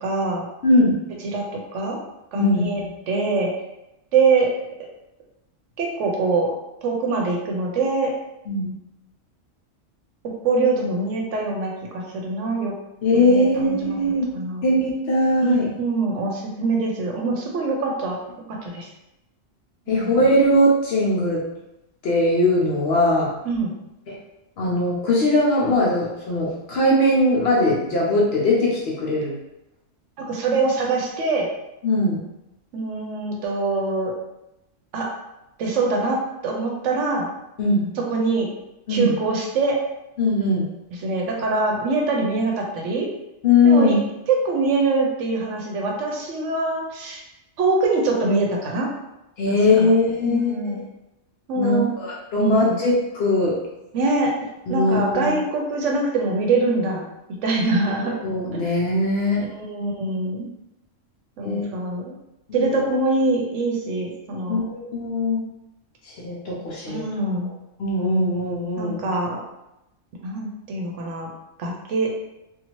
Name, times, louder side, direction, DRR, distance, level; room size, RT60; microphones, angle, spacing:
voice 1, 0.0-0.5 1.2-2.0 2.3-3.5 4.1-4.5 5.8-6.5 6.8-8.1 10.4-12.7 13.1-14.0 14.3-14.6 15.4-18.2 18.5-18.9 19.9-20.1 23.4-23.7 30.2-31.5 32.7-34.1 34.9-35.1 35.6-36.2 36.4-37.3 38.0-38.5 38.9-39.8 40.9-43.1 43.6-44.0 44.3-47.2 47.6-48.9 49.5-49.9 50.2-50.8 51.5-51.9 52.4-52.8 53.9-54.3 54.7-57.1 57.4-58.1 58.5-58.7 59.5-60.5 61.4-62.1 62.5-64.6 66.9-67.5 68.8-69.4 70.2-71.3 71.6-72.1, right 3 dB, 70° right, 0 dB, 0.9 m, -24 dB
voice 2, 2.3-2.9 8.5-8.7 13.0-14.3 14.6-15.7 19.9-21.4 22.0-23.3 24.1-24.2 24.6-29.3 31.8-32.2 37.6-37.9 38.9-39.1 40.2-40.6 43.4-44.0 49.4-50.8 51.6-53.6 54.7-55.3 58.0-59.4 61.4-61.6 62.5-62.8 64.5-65.4 66.1-67.0 67.8-69.0, left 1 dB, 60° left, -4 dB, 0.8 m, -20 dB
2.7 x 2.4 x 3.0 m, 0.92 s
omnidirectional pair, 1.4 m